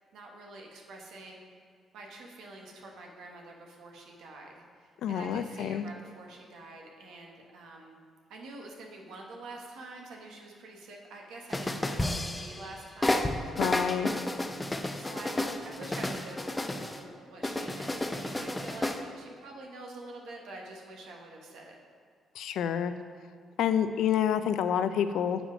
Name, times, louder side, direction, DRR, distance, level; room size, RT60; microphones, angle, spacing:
voice 1, 0.1-1.4 1.9-8.0 8.3-13.9 14.7-16.4 16.7-21.8, right 2 dB, 80° right, 0 dB, 1.1 m, -47 dB
voice 2, 5.0-5.8 13.6-14.1 22.4-22.9 23.6-25.4, left 9 dB, 80° left, 11 dB, 0.3 m, -28 dB
sound 1, 11.5-12.7 13.0-17.0 17.4-19.0, left 1 dB, 15° left, 0.5 m, -31 dB
7.5 x 5.0 x 5.0 m, 2.1 s
cardioid pair, 90°, 0 cm